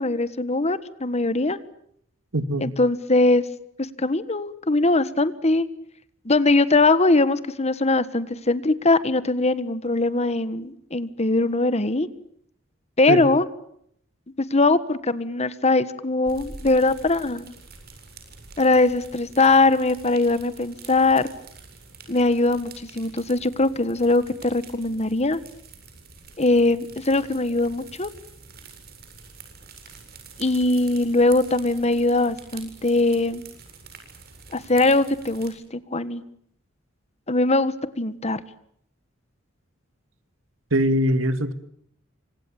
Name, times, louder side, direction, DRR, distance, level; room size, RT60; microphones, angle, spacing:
voice 1, 0.0-1.6 2.6-3.4 3.8-5.7 6.2-12.1 13.0-13.4 14.4-17.5 18.6-21.3 22.1-25.4 26.4-28.1 30.4-33.4 34.5-36.2 37.3-38.4, left 2 dB, 35° left, 14 dB, 1.5 m, -21 dB
voice 2, 2.3-2.7 13.1-13.2 40.7-41.5, equal, 85° right, 11 dB, 2.4 m, -22 dB
sound 1, 16.3-35.5, right 4 dB, 50° right, 7.9 m, -46 dB
28.5 x 26.0 x 7.2 m, 0.69 s
head